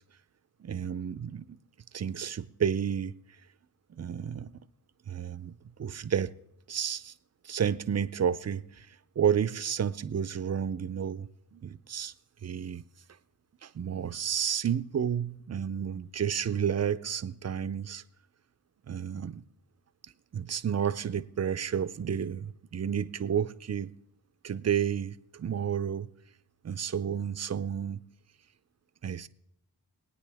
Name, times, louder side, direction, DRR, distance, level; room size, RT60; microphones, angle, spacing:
voice 1, 0.6-1.5 1.9-3.2 3.9-4.6 5.1-5.5 5.8-6.3 6.7-7.1 7.4-12.1 12.4-12.9 13.6-18.0 18.9-19.4 20.3-23.9 24.4-26.1 26.6-28.0 29.0-29.3, right 8 dB, 40° right, 0.5 m, -31 dB
21.5 x 9.3 x 3.4 m
wide cardioid pair, 85°, 42 cm